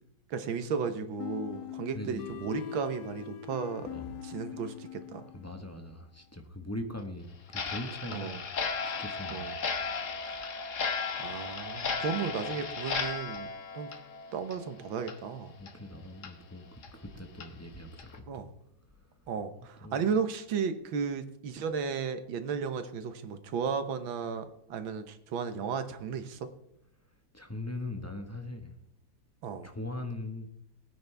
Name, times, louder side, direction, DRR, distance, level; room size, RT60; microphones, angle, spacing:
voice 1, 0.3-3.9 4.2-5.3 8.1-8.4 9.3-9.6 11.2-13.5 13.7-13.9 14.3-15.5 18.3-18.5 19.3-26.5 29.4-29.7, right 6 dB, 75° right, 10 dB, 1.8 m, -34 dB
sound 1, 1.2-5.9, left 10 dB, 65° left, 1.0 m, -42 dB
voice 2, 1.9-2.4 3.9-4.1 5.3-8.4 8.8-9.5 15.6-18.4 19.8-20.0 27.3-28.7 29.6-30.5, left 1 dB, 10° left, 4 dB, 1.0 m, -41 dB
Clock, 7.5-14.7 15.0-15.2 15.7-15.8 16.2-16.3 16.8-16.9 17.4-17.5 18.0-18.2, left 5 dB, 45° left, 1.3 m, -35 dB
20.0 x 9.4 x 3.4 m, 0.77 s
omnidirectional pair, 2.2 m